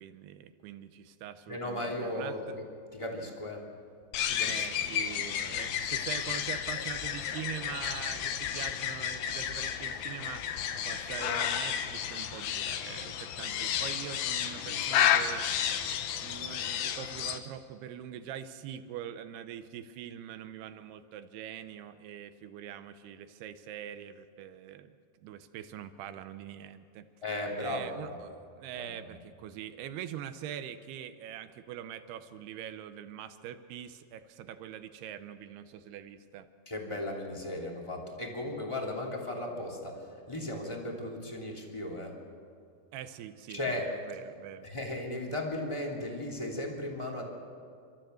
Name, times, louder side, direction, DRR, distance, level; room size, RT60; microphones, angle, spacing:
voice 1, 0.0-2.6 4.5-10.4 10.9-15.4 16.2-24.9 25.2-27.1 27.6-36.5 42.9-44.7, right 10 dB, 75° right, 11 dB, 2.5 m, -43 dB
voice 2, 1.5-2.6 2.9-3.7 4.3-4.7 27.2-28.2 28.7-29.0 36.7-42.2 43.5-44.0 44.6-47.2, left 1 dB, 10° left, -1 dB, 1.9 m, -36 dB
sound 1, 4.1-17.4, left 9 dB, 70° left, 2.4 m, -32 dB
29.5 x 13.5 x 7.8 m, 2.3 s
omnidirectional pair, 5.2 m